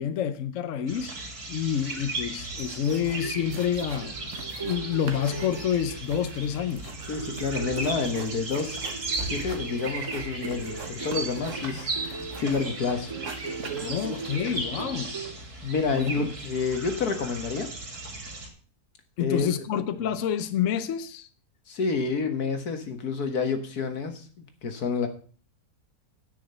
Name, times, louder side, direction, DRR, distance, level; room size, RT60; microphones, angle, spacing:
voice 1, 0.0-4.2 4.6-6.9 13.8-15.2 15.9-16.1 19.2-21.3, left 9 dB, 60° left, 1.0 m, -28 dB
sound 1, 0.9-18.5, right 2 dB, 80° right, 3.3 m, -36 dB
sound 2, 2.3-2.4 2.6-3.2 3.5-4.8 5.1-12.8 13.1-14.4, right 5 dB, 55° right, 1.6 m, -43 dB
sound 3, 3.2-6.9 7.2-15.3, right 4 dB, 25° right, 0.5 m, -40 dB
voice 2, 7.1-8.8 9.3-13.1 15.6-17.7 19.2-19.5 21.7-25.1, left 5 dB, 85° left, 2.1 m, -29 dB
9.7 x 6.3 x 6.9 m
omnidirectional pair, 1.6 m